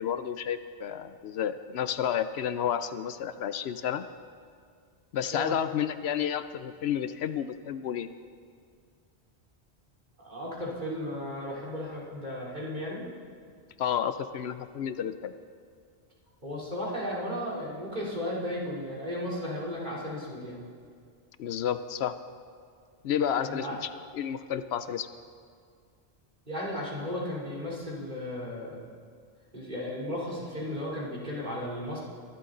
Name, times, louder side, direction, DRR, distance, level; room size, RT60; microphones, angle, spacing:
voice 1, 0.0-4.1 5.1-8.1 13.8-15.3 21.4-22.1 23.0-25.1, left 9 dB, 75° left, 11 dB, 0.8 m, -31 dB
voice 2, 10.2-13.1 16.4-20.6 23.4-23.8 26.5-28.8 29.5-32.0, left 1 dB, 45° right, -5 dB, 3.6 m, -35 dB
22.5 x 12.5 x 3.9 m, 2.1 s
omnidirectional pair, 1.1 m